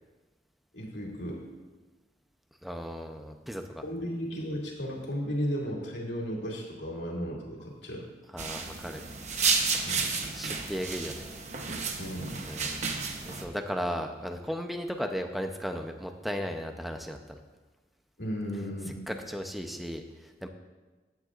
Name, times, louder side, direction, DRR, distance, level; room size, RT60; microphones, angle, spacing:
voice 1, 0.7-1.4 3.8-8.1 9.8-10.1 12.0-12.3 18.2-19.0, equal, 85° left, -3 dB, 2.6 m, -34 dB
voice 2, 2.6-3.8 8.3-9.0 10.3-11.3 12.5-12.9 13.3-17.4 19.1-20.5, equal, ahead, 5 dB, 0.6 m, -36 dB
sound 1, 8.4-13.4, right 4 dB, 40° right, 0.9 m, -31 dB
16.0 x 9.3 x 2.5 m, 1.3 s
head